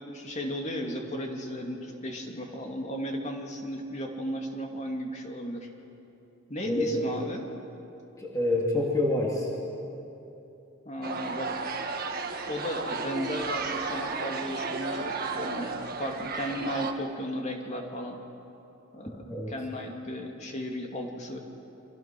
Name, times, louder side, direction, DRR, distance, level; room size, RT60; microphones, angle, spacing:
voice 1, 0.0-5.7 6.5-7.5 10.8-11.6 12.5-18.2 18.9-21.4, equal, 35° left, 2 dB, 2.6 m, -35 dB
voice 2, 6.7-7.1 8.2-9.5 19.3-19.5, left 1 dB, 15° left, -3 dB, 3.0 m, -27 dB
sound 1, 11.0-16.9, right 4 dB, 45° right, 1.7 m, -33 dB
29.0 x 25.0 x 6.2 m, 2.9 s
head